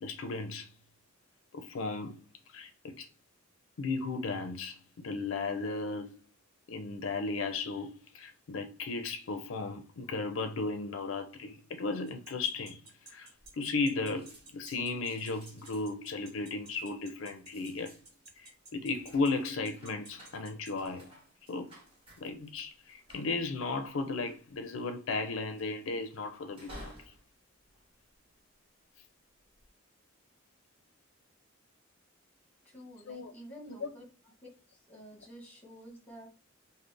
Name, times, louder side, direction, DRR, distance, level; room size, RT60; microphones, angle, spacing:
voice 1, 0.0-0.7 1.5-2.2 2.5-3.1 3.8-6.2 6.7-12.8 13.1-13.3 13.5-17.9 18.4-21.1 21.5-21.7 22.2-26.9 33.1-33.3 33.8-33.9, left 3 dB, 70° left, 0.5 m, -35 dB
sound 1, 12.1-20.9, right 3 dB, 55° right, 1.2 m, -52 dB
sound 2, 13.4-13.9 14.1-28.7 29.3-29.7, equal, 25° right, 1.2 m, -56 dB
voice 2, 32.6-34.0 34.7-36.3, equal, 10° left, 1.0 m, -50 dB
3.9 x 2.0 x 3.2 m
head